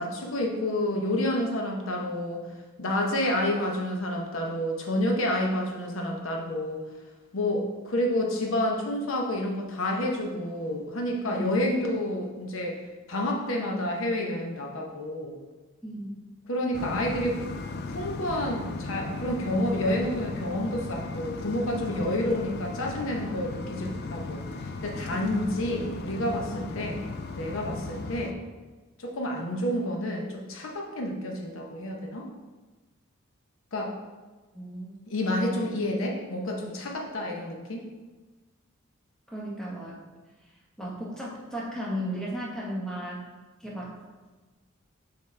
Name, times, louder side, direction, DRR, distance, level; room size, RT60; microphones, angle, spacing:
voice 1, 0.0-2.4 2.8-6.8 7.3-12.8 13.1-15.4 16.5-17.4 17.9-27.0 27.4-28.4 29.0-32.3 33.7-33.9 35.1-37.8, left 1 dB, 75° left, 1 dB, 0.9 m, -29 dB
voice 2, 11.3-11.7 15.8-16.1 25.1-25.2 26.5-26.7 34.5-34.9 39.3-40.0 40.8-43.3 43.6-44.0, equal, 5° left, -5 dB, 1.3 m, -35 dB
sound 1, 16.7-28.3, left 3 dB, 55° left, 0.4 m, -36 dB
6.9 x 4.1 x 3.3 m, 1.2 s
head